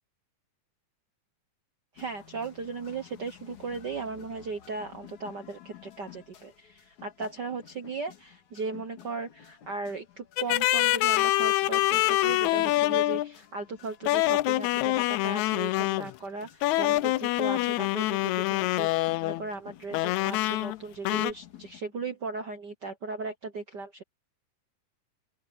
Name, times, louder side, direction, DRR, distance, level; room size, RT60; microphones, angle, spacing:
voice 1, 1.9-24.0, right 4 dB, 80° right, 0.9 m, -37 dB
sound 1, 2.0-21.8, left 10 dB, 60° left, 3.5 m, -53 dB
sound 2, 10.4-13.3 14.1-16.1 16.6-19.4 19.9-20.8 21.0-21.3, left 18 dB, 85° left, 1.6 m, -25 dB
open air
omnidirectional pair, 3.9 m